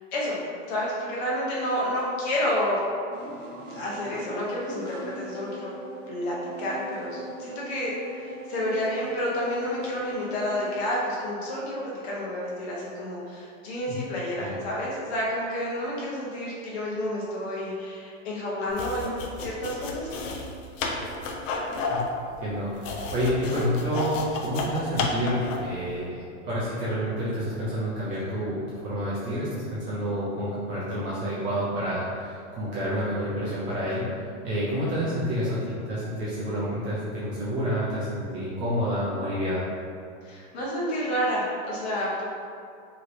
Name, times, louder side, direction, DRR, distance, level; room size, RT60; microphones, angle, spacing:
voice 1, 0.7-2.8 3.7-5.7 6.1-19.1 19.4-20.1 40.2-42.2, left 1 dB, 55° left, -5 dB, 1.0 m, -30 dB
sound 1, 3.1-10.9, right 2 dB, 65° right, 0.7 m, -40 dB
sound 2, 18.7-25.7, left 3 dB, 70° left, 0.6 m, -32 dB
voice 2, 22.4-26.2 26.4-34.0 34.4-39.7, equal, 20° right, -9 dB, 0.4 m, -29 dB
3.1 x 2.9 x 2.5 m, 2.4 s
hypercardioid pair, 145°, 39 cm